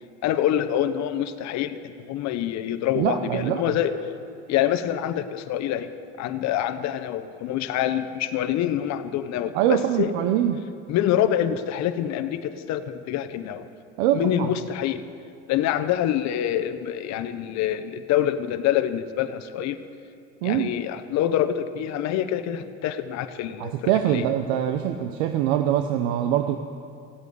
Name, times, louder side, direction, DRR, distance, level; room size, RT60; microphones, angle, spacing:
voice 1, 0.2-3.9 4.5-5.9 6.2-10.1 10.9-13.7 14.1-15.0 15.5-19.8 20.4-24.2, left 11 dB, 60° left, 10 dB, 0.9 m, -26 dB
voice 2, 2.9-3.8 9.5-10.6 14.0-14.5 20.4-20.8 23.6-26.6, right 11 dB, 85° right, 7 dB, 0.8 m, -23 dB
15.5 x 8.3 x 9.5 m, 2.5 s
supercardioid pair, 100°, 31 cm